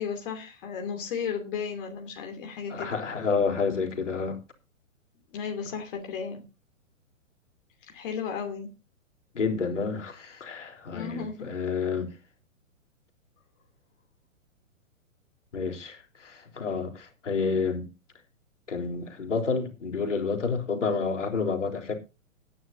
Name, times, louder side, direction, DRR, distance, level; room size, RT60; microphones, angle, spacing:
voice 1, 0.0-2.9 5.3-6.4 7.8-8.7 10.9-11.5, left 6 dB, 40° left, 3.0 m, -34 dB
voice 2, 2.7-4.4 9.3-12.1 15.5-17.9 18.7-22.0, left 5 dB, 65° left, 3.8 m, -29 dB
19.0 x 11.0 x 2.7 m
figure-of-eight pair, 120°, 40 cm